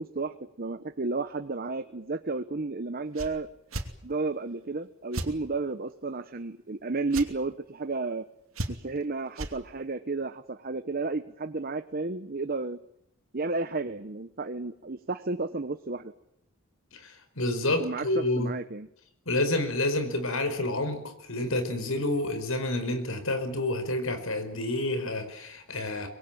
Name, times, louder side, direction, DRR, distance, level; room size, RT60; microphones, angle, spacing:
voice 1, 0.0-3.5 4.0-8.3 8.7-12.8 13.3-16.1 17.8-18.9, right 3 dB, 45° right, 10 dB, 1.0 m, -32 dB
sound 1, 3.1-3.3 3.7-3.9 5.1-5.3 7.1-7.3 8.5-9.0 9.3-9.5, right 1 dB, 80° right, 2.8 m, -33 dB
voice 2, 16.9-18.5 19.2-26.1, left 2 dB, 80° left, 8 dB, 4.9 m, -29 dB
24.5 x 21.5 x 9.1 m, 0.73 s
head